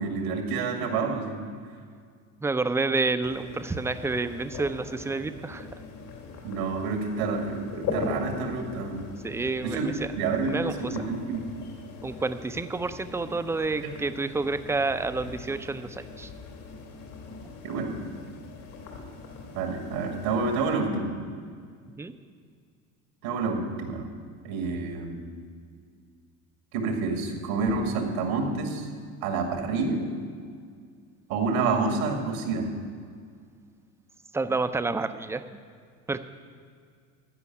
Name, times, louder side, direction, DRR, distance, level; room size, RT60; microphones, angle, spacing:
voice 1, 0.0-1.4 6.4-9.0 9.6-9.9 10.1-11.4 17.6-17.9 19.5-21.1 23.2-24.0 24.4-25.3 26.7-28.9 29.2-30.1 31.3-32.7, right 4 dB, 85° right, 3 dB, 2.2 m, -28 dB
voice 2, 2.4-5.7 9.2-10.1 10.4-10.9 12.0-16.3 22.0-22.1 34.3-35.4 36.1-36.2, right 3 dB, 5° right, 10 dB, 0.4 m, -29 dB
sound 1, 3.2-20.8, left 4 dB, 75° left, 2.7 m, -41 dB
14.5 x 5.2 x 9.4 m, 2.1 s
supercardioid pair, 100°, 41 cm